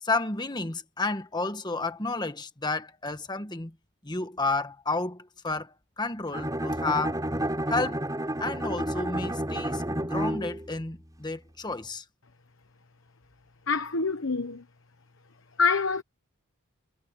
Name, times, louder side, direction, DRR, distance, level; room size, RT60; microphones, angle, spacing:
voice 1, 0.0-3.7 4.0-7.2 7.7-8.0 8.4-12.0, left 3 dB, 20° left, 1.4 m, -31 dB
Bowed string instrument, 6.3-10.7, right 1 dB, 15° right, 5.3 m, -30 dB
voice 2, 13.7-14.6 15.6-16.0, left 4 dB, 60° left, 1.1 m, -26 dB
head